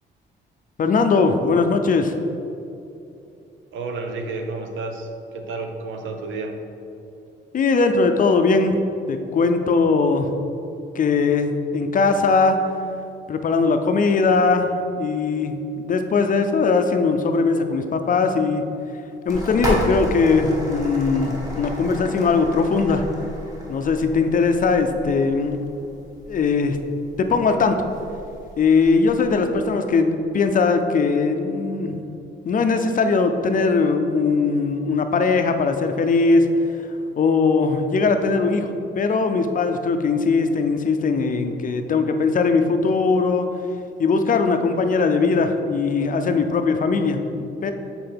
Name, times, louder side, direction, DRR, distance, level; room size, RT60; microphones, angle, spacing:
voice 1, 0.8-2.1 7.5-8.8 9.1-10.3 10.9-12.6 13.3-18.6 19.3-23.0 23.7-25.6 26.3-26.8 27.2-27.8 28.6-32.0 32.5-36.5 37.2-38.7 39.0-43.5 44.0-47.7, left 4 dB, 45° left, 7 dB, 0.5 m, -20 dB
voice 2, 3.7-6.6, right 3 dB, 75° right, 4 dB, 0.8 m, -31 dB
sound 1, 19.3-29.3, equal, 15° right, 1.5 m, -32 dB
7.8 x 4.3 x 3.5 m, 2.7 s
cardioid pair, 90°, 20 cm